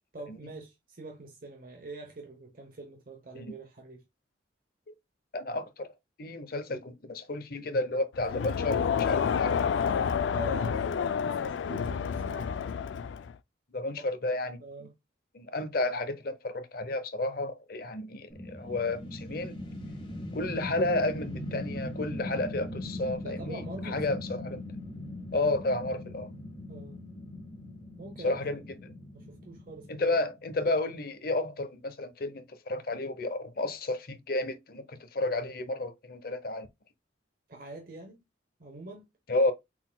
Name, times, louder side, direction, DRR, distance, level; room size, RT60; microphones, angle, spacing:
voice 1, 0.1-4.0 10.2-12.5 14.0-14.1 14.6-14.9 23.2-24.2 26.7-27.0 28.0-28.6 29.1-30.1 37.5-38.2 38.6-39.1, right 3 dB, 45° right, 0.8 m, -45 dB
voice 2, 5.3-5.9 6.2-9.6 9.9-10.0 13.7-14.6 15.3-19.6 20.3-24.6 25.3-26.3 28.2-28.9 29.9-36.7 39.3-39.5, left 2 dB, 50° left, 0.7 m, -32 dB
Crowd, 8.2-13.4, left 7 dB, 75° left, 0.3 m, -29 dB
sound 1, 18.3-30.5, left 1 dB, 25° left, 1.7 m, -40 dB
5.9 x 4.1 x 2.2 m
head